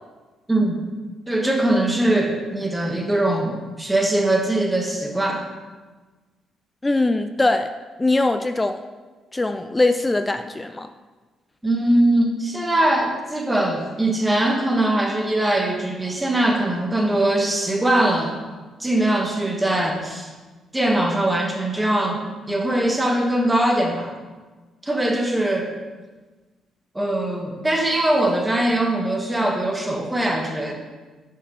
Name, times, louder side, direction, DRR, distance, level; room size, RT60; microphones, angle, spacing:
voice 1, 0.5-0.8 1.3-5.4 11.6-18.3 18.8-20.3 20.7-24.1 24.8-25.7 26.9-30.7, right 1 dB, 10° right, 2 dB, 1.4 m, -21 dB
voice 2, 6.8-7.7 8.0-8.8 9.3-10.9, left 2 dB, 15° left, 9 dB, 0.3 m, -21 dB
5.9 x 5.8 x 5.5 m, 1.3 s
cardioid pair, 90°, 0 cm